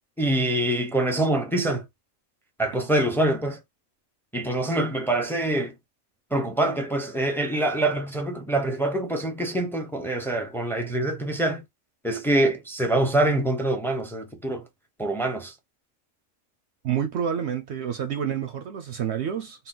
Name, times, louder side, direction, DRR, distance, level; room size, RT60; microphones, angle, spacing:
voice 1, 0.2-1.8 2.6-3.6 4.3-5.7 6.3-11.6 12.0-14.6 15.0-15.5, right 1 dB, 5° left, 0.5 m, -25 dB
voice 2, 16.8-19.7, right 8 dB, 65° right, 0.7 m, -28 dB
4.0 x 2.2 x 3.7 m
omnidirectional pair, 1.5 m